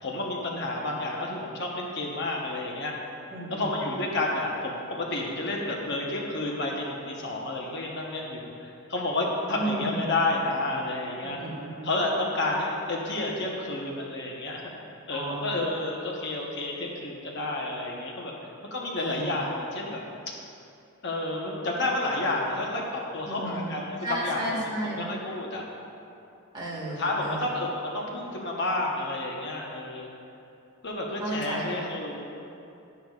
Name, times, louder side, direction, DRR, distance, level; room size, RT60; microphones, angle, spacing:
voice 1, 0.0-2.9 3.5-11.5 11.8-14.6 15.1-18.3 18.7-20.0 21.0-22.8 23.1-24.4 25.0-25.6 27.0-30.1 30.8-32.2, left 2 dB, 55° left, -2 dB, 1.0 m, -30 dB
voice 2, 3.3-3.9 9.5-10.1 11.2-11.9 15.1-15.5 19.0-19.4 23.2-23.7 24.0-25.1 26.5-27.5 31.2-31.8, right 1 dB, 20° right, -6 dB, 1.9 m, -33 dB
11.5 x 10.5 x 2.4 m, 2.7 s
head